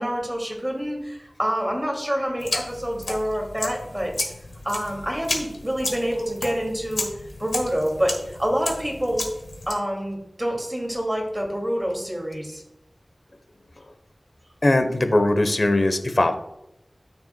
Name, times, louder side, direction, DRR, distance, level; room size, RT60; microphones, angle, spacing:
voice 1, 0.0-4.1 4.6-7.1 7.4-9.3 9.7-12.6, equal, 15° right, 0 dB, 2.3 m, -27 dB
sound 1, 2.4-9.7, left 2 dB, 85° left, 1.5 m, -33 dB
voice 2, 14.6-16.4, left 2 dB, 60° left, 8 dB, 0.9 m, -20 dB
13.0 x 6.9 x 2.2 m, 0.87 s
wide cardioid pair, 65°, 0 cm